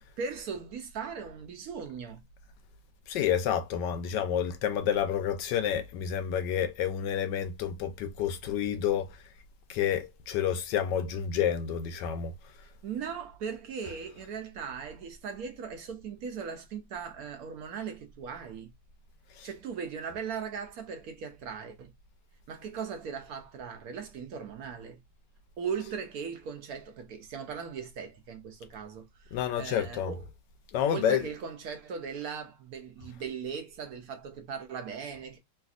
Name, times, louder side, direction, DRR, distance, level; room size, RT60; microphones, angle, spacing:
voice 1, 0.2-2.2 12.8-18.7 19.4-21.9 22.5-25.0 25.6-30.3 30.9-35.4, right 6 dB, 70° right, 0.9 m, -38 dB
voice 2, 3.1-9.2 9.7-12.3 19.4-19.5 29.3-30.2 30.7-31.3, left 9 dB, 75° left, 1.1 m, -29 dB
3.3 x 2.6 x 2.4 m
omnidirectional pair, 2.1 m